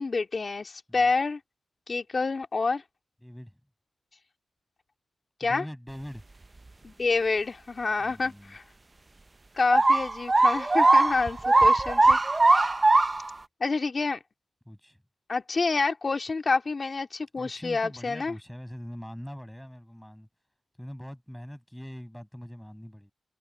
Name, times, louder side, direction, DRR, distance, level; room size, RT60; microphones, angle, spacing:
voice 1, 0.0-1.4 1.9-2.8 5.4-5.6 6.8-8.6 9.5-12.2 12.5-12.7 13.6-14.2 15.3-18.4, left 4 dB, 45° left, 2.5 m, -28 dB
voice 2, 3.2-3.5 5.4-6.2 8.0-8.6 11.3-11.8 14.7-15.0 17.4-20.3 20.8-23.1, equal, 5° left, 7.9 m, -43 dB
sound 1, 9.7-13.3, right 2 dB, 30° right, 0.6 m, -20 dB
cardioid pair, 75°, 0 cm